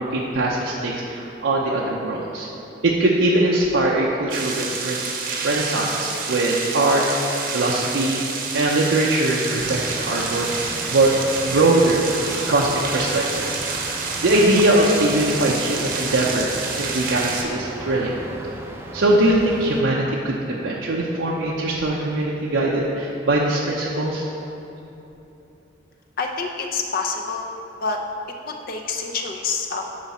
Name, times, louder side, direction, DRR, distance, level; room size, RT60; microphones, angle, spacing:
voice 1, 0.0-2.5 2.8-5.0 5.4-8.3 8.5-12.1 12.5-13.5 13.9-18.2 18.9-24.3, right 1 dB, 80° right, -3 dB, 0.6 m, -21 dB
sound 1, 4.3-17.4, right 4 dB, 45° right, 0.8 m, -28 dB
sound 2, 9.6-19.8, right 1 dB, 10° right, 0.5 m, -36 dB
voice 2, 26.2-27.5 27.8-28.0 28.4-30.0, left 4 dB, 50° left, 2 dB, 0.5 m, -27 dB
9.4 x 5.1 x 4.2 m, 3.0 s
head